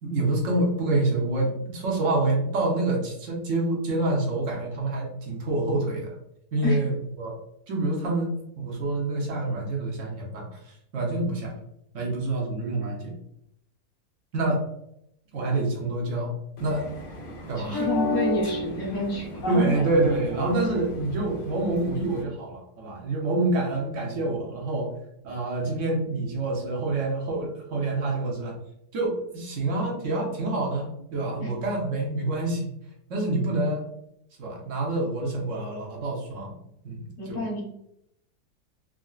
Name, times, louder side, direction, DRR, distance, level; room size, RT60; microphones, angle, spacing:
voice 1, 0.0-6.1 6.5-7.3 7.7-8.3 8.6-10.6 10.9-11.5 11.9-13.1 14.3-14.6 15.3-16.3 16.6-16.9 17.5-17.9 19.5-24.9 25.2-28.5 28.9-32.7 33.1-33.9 34.4-36.5 36.8-37.0 37.3-37.4, right 2 dB, 55° right, -1 dB, 1.0 m, -27 dB
sound 1, 16.6-22.2, equal, 85° left, 0.4 m, -32 dB
voice 2, 17.5-19.3 31.4-31.5 37.2-37.6, left 3 dB, 55° left, -7 dB, 1.5 m, -29 dB
3.7 x 2.1 x 2.3 m, 0.78 s
omnidirectional pair, 1.7 m